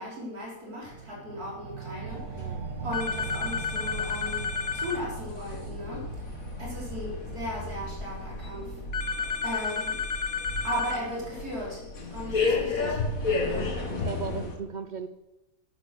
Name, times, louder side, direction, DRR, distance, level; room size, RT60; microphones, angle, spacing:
voice 1, 0.0-2.6 2.8-8.8 9.4-10.0 10.6-13.0 13.4-13.8, equal, 80° right, -3 dB, 4.7 m, -37 dB
sound 1, 0.9-12.0, right 7 dB, 55° right, 1.3 m, -42 dB
sound 2, 2.1-14.6, left 3 dB, 65° left, 2.4 m, -34 dB
sound 3, 2.9-5.0 8.9-11.0, left 6 dB, 45° left, 1.2 m, -31 dB
voice 2, 13.9-15.1, right 5 dB, 40° right, 10 dB, 0.7 m, -37 dB
12.0 x 10.5 x 6.8 m, 0.98 s
omnidirectional pair, 1.6 m